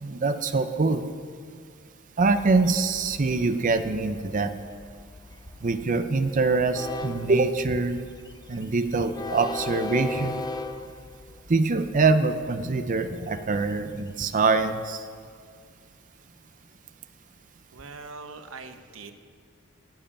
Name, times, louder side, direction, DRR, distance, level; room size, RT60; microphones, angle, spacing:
voice 1, 0.0-1.0 2.2-4.5 5.6-8.0 8.5-10.4 11.5-15.1, right 3 dB, 40° right, 9 dB, 0.6 m, -24 dB
Train, 2.2-15.2, left 3 dB, 20° left, 0.4 m, -40 dB
voice 2, 17.7-19.1, right 4 dB, 75° right, 7 dB, 1.0 m, -42 dB
12.0 x 7.7 x 8.6 m, 2.1 s
head